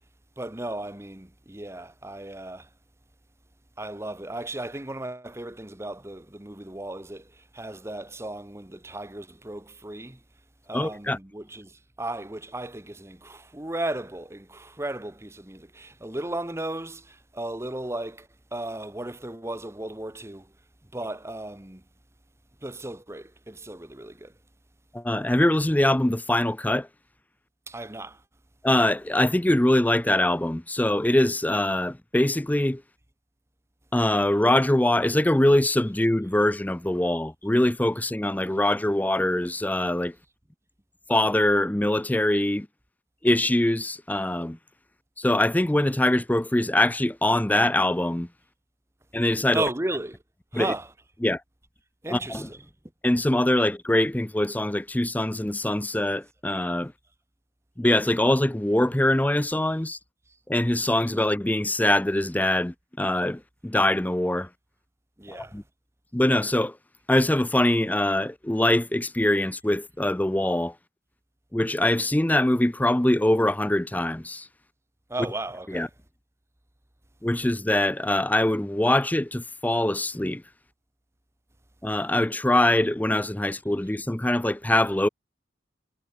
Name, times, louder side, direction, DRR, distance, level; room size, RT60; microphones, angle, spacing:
voice 1, 0.4-2.7 3.8-10.2 10.7-20.5 20.9-21.8 22.6-24.3 27.7-28.2 49.5-50.2 50.5-50.9 52.0-52.7 65.2-65.6 75.1-75.9, right 1 dB, 15° right, 1.2 m, -35 dB
voice 2, 10.7-11.2 24.9-26.9 28.6-32.8 33.9-40.1 41.1-42.7 43.2-44.6 45.2-48.3 49.1-49.6 50.5-50.7 51.2-51.4 52.1-52.5 53.0-56.9 57.8-60.0 60.5-64.5 65.3-65.6 66.1-66.8 67.1-70.7 71.5-74.5 75.7-75.9 77.2-80.4 81.8-85.1, left 1 dB, 10° left, 0.6 m, -23 dB
head